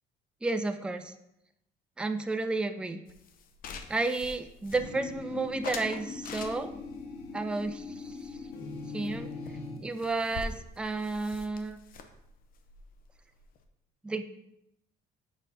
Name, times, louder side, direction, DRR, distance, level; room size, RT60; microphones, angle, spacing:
voice 1, 0.4-1.1 2.0-3.0 3.9-6.7 7.3-8.4 8.9-9.3 9.8-11.8 14.0-14.2, right 3 dB, 5° right, 7 dB, 0.4 m, -32 dB
sound 1, 3.1-5.2 5.6-6.9 7.5-8.8 9.0-9.2 9.5-9.6 9.8-13.6, left 4 dB, 60° left, 0.7 m, -44 dB
sound 2, 4.7-9.8, left 4 dB, 80° left, 1.2 m, -41 dB
7.2 x 5.3 x 2.7 m, 0.80 s
cardioid pair, 110°, 17 cm